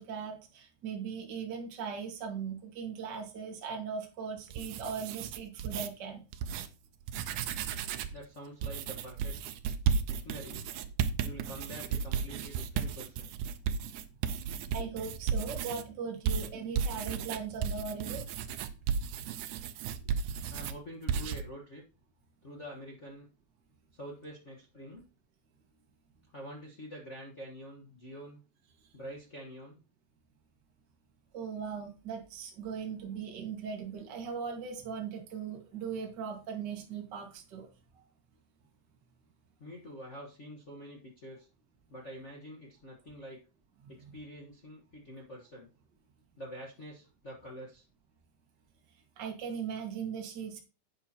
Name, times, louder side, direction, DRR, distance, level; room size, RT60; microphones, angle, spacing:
voice 1, 0.0-6.2 14.3-18.2 31.3-38.0 49.2-50.6, right 6 dB, 40° right, 1 dB, 2.1 m, -39 dB
sound 1, 4.4-5.9 6.3-6.7 7.0-8.2 8.6-15.8 16.3-20.8 21.1-21.4, right 7 dB, 85° right, 2.2 m, -34 dB
voice 2, 8.1-9.4 10.1-10.7 11.2-13.3 20.5-21.8 22.4-23.3 23.9-25.0 26.3-28.4 28.9-29.8 39.6-41.5 41.9-43.4 43.9-45.7 46.4-47.8, equal, 50° left, -1 dB, 0.8 m, -46 dB
10.5 x 8.7 x 2.9 m, 0.32 s
omnidirectional pair, 3.6 m